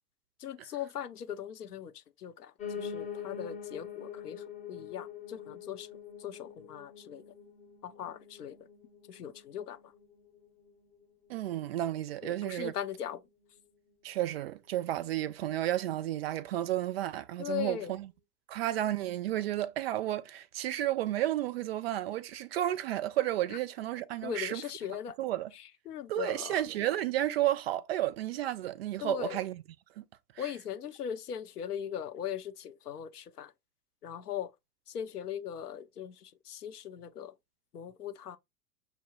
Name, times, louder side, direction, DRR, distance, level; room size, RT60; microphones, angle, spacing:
voice 1, 0.4-1.9 2.2-2.5 2.8-5.9 6.2-7.2 7.8-8.6 9.1-9.8 12.2-13.2 17.4-17.9 24.2-25.1 25.9-26.6 29.0-29.4 30.4-33.5 34.0-34.5 34.9-37.3 37.7-38.4, left 9 dB, 75° left, 0.7 m, -39 dB
Piano, 2.6-11.7 12.1-13.3 13.5-13.6 13.9-14.0 14.2-14.3 14.9-15.0, left 7 dB, 15° left, 0.8 m, -45 dB
voice 2, 11.3-12.7 14.0-18.1 18.5-24.6 25.2-25.5 26.1-29.6 30.0-30.1 30.4-30.5, right 13 dB, 45° right, 0.4 m, -32 dB
6.0 x 2.1 x 2.8 m
figure-of-eight pair, 90°, 47 cm